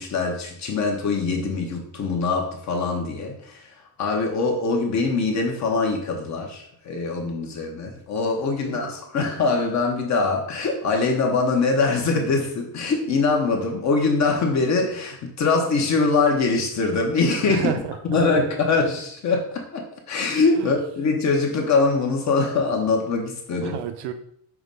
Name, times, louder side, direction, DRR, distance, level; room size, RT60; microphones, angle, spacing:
voice 1, 0.0-17.7 18.1-23.8, left 4 dB, 40° left, 2 dB, 1.0 m, -23 dB
voice 2, 8.6-9.0 17.5-18.2 20.6-20.8 23.6-24.1, right 8 dB, 70° right, 9 dB, 0.8 m, -31 dB
6.0 x 3.1 x 5.3 m, 0.66 s
cardioid pair, 180°, 43 cm